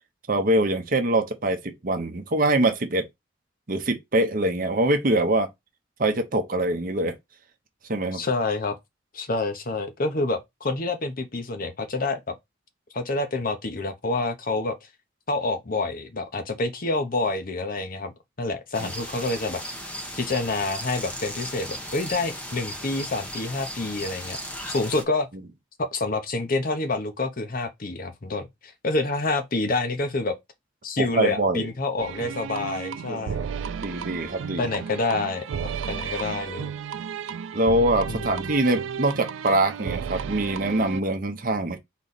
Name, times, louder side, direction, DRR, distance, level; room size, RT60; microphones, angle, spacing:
voice 1, 0.3-3.1 3.7-5.5 6.0-7.1 7.9-8.2 18.8-18.9 31.0-31.7 33.1-33.4 33.8-34.7 37.5-41.8, right 1 dB, 45° right, 0.9 m, -24 dB
voice 2, 8.1-8.8 9.1-12.3 12.9-14.8 15.3-18.1 18.4-24.4 24.7-25.3 25.8-30.4 30.8-33.5 34.6-36.7 38.1-38.5, left 2 dB, 45° left, 0.8 m, -28 dB
sound 1, 18.7-25.0, equal, 5° left, 0.9 m, -36 dB
sound 2, 32.0-41.0, right 7 dB, 75° right, 0.4 m, -33 dB
4.1 x 3.2 x 4.0 m
head